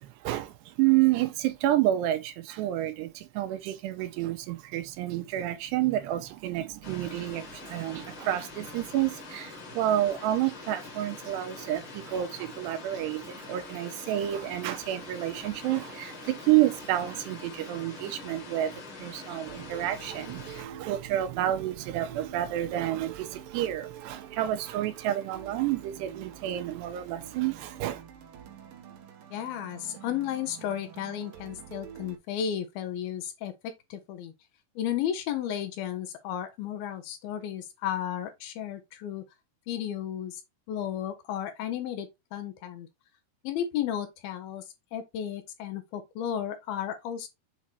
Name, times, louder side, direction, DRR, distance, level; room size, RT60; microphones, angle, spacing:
voice 1, 0.0-28.0, right 13 dB, 90° right, 3.0 m, -29 dB
sound 1, 6.8-20.6, left 4 dB, 45° left, 1.9 m, -44 dB
sound 2, 19.5-32.2, right 9 dB, 65° right, 2.7 m, -46 dB
voice 2, 29.3-33.5 33.9-34.3 34.8-39.3 39.7-40.4 40.7-42.9 43.4-44.6 44.9-47.3, left 10 dB, 75° left, 2.4 m, -33 dB
7.3 x 3.2 x 4.2 m
omnidirectional pair, 4.8 m